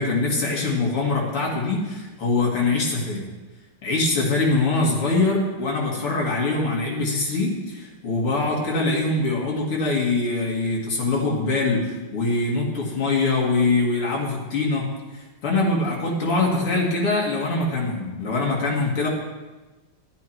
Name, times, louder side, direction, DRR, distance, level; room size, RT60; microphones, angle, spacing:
voice 1, 0.0-3.3 3.8-14.9 15.1-19.1, left 3 dB, 90° left, -3 dB, 3.2 m, -23 dB
13.5 x 10.5 x 4.6 m, 1.2 s
omnidirectional pair, 2.4 m